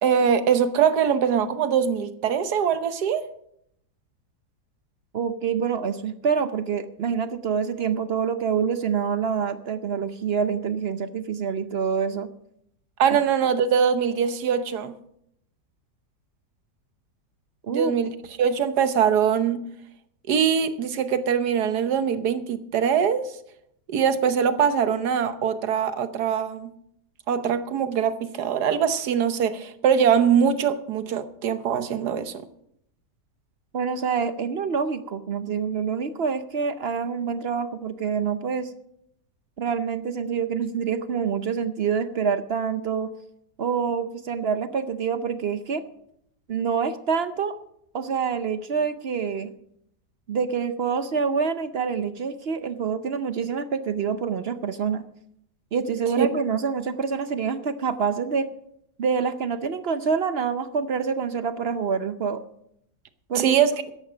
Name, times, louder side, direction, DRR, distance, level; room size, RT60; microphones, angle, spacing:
voice 1, 0.0-3.3 13.0-14.9 17.7-18.1 18.4-19.6 20.3-23.3 23.9-26.7 27.3-32.4 56.2-56.3 63.3-63.7, right 7 dB, 75° right, 1.5 m, -22 dB
voice 2, 5.1-12.3 13.1-13.2 17.6-17.9 33.7-38.7 39.6-43.1 43.6-45.8 46.5-47.6 47.9-49.5 50.3-55.0 55.7-58.5 59.0-62.4 63.3-63.6, right 6 dB, 60° right, 0.6 m, -26 dB
14.0 x 11.0 x 5.1 m
omnidirectional pair, 1.8 m